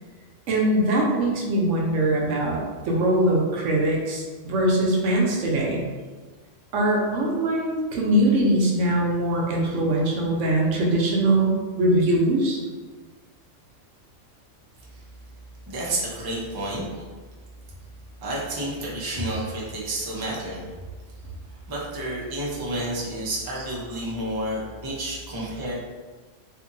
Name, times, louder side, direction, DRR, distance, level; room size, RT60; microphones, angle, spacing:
voice 1, 0.5-2.6 2.8-5.8 6.7-12.6 19.3-19.4, right 1 dB, 80° right, -2 dB, 1.0 m, -22 dB
voice 2, 15.7-16.9 18.2-20.6 21.7-25.7, right 1 dB, 30° right, -5 dB, 0.4 m, -30 dB
2.8 x 2.5 x 2.5 m, 1.4 s
omnidirectional pair, 1.2 m